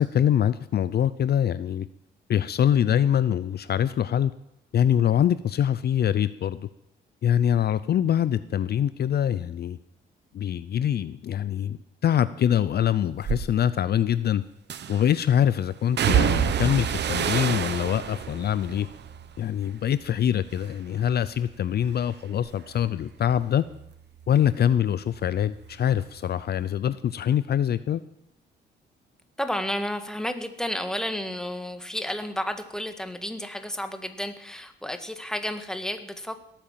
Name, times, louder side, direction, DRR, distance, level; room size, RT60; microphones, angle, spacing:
voice 1, 0.0-1.9 2.3-4.3 4.7-6.7 7.2-9.8 10.3-14.4 14.9-18.9 19.4-23.6 24.3-28.0, left 10 dB, 55° left, 15 dB, 0.6 m, -24 dB
sound 1, 13.2-13.5 14.7-15.2 16.0-20.2 20.5-21.1 21.5-24.8 25.1-26.2 26.5-26.6, right 9 dB, 60° right, 1.1 m, -29 dB
voice 2, 29.4-36.4, left 1 dB, 5° left, 7 dB, 1.7 m, -31 dB
17.5 x 9.0 x 7.5 m, 0.78 s
cardioid pair, 90°, 20 cm